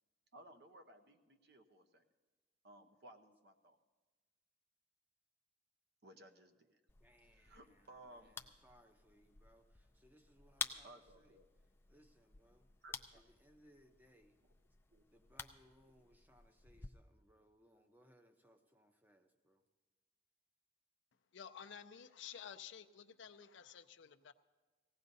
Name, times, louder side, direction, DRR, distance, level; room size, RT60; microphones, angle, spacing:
voice 1, 0.3-2.0 2.6-3.8 6.0-6.8 7.4-8.4 10.8-11.5 12.8-13.2 14.9-15.1, right 1 dB, 55° right, 6 dB, 0.9 m, -59 dB
sound 1, 6.9-16.9, left 4 dB, 10° left, 0.4 m, -51 dB
voice 2, 7.0-11.4 11.9-12.7 13.1-14.4 15.1-19.6, equal, 10° right, 6 dB, 0.7 m, -68 dB
voice 3, 21.3-24.3, left 8 dB, 70° left, 9 dB, 0.5 m, -52 dB
19.0 x 16.5 x 2.7 m, 1.3 s
head